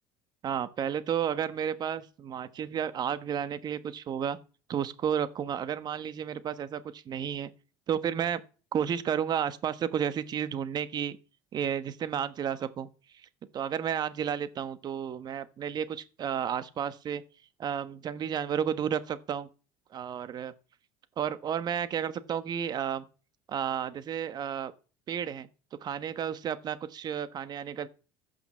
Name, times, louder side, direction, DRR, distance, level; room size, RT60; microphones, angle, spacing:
voice 1, 0.4-4.4 4.7-7.5 7.9-8.4 8.7-11.2 11.5-12.9 13.5-17.2 17.6-19.5 19.9-20.5 21.2-23.0 23.5-24.7 25.1-25.5 25.8-27.9, right 8 dB, 40° right, 1.3 m, -32 dB
15.0 x 5.8 x 7.2 m
supercardioid pair, 115°, 11 cm